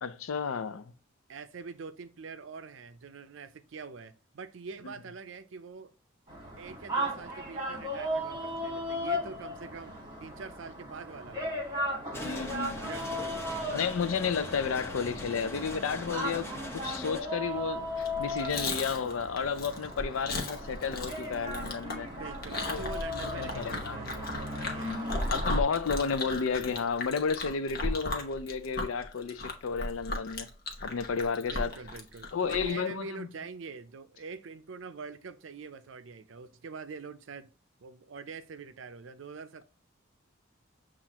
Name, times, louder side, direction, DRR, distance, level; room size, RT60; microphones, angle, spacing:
voice 1, 0.0-0.9 4.8-4.9 12.2-12.9 13.7-22.1 22.5-22.8 23.4-24.0 24.6-30.5 30.8-31.7 32.3-33.3, left 6 dB, 80° left, 0.5 m, -32 dB
voice 2, 1.3-5.9 6.6-11.6 12.1-12.4 12.8-13.8 22.1-25.2 31.4-37.5 37.8-39.6, right 4 dB, 70° right, 0.5 m, -44 dB
sound 1, 6.3-25.6, equal, 20° right, 1.3 m, -37 dB
sound 2, 12.1-17.2, left 1 dB, 10° left, 0.6 m, -40 dB
Chewing mastication, 18.0-32.8, left 2 dB, 50° left, 0.9 m, -36 dB
7.3 x 2.5 x 2.9 m
head